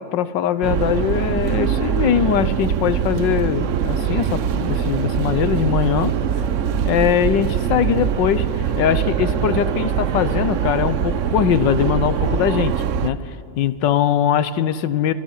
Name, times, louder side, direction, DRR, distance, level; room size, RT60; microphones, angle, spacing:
voice 1, 0.0-6.2 6.8-8.5 8.8-15.1, left 9 dB, 90° left, 14 dB, 1.5 m, -21 dB
sound 1, 0.6-13.1, right 8 dB, 60° right, 0.8 m, -22 dB
26.5 x 25.0 x 5.6 m, 2.4 s
omnidirectional pair, 1.9 m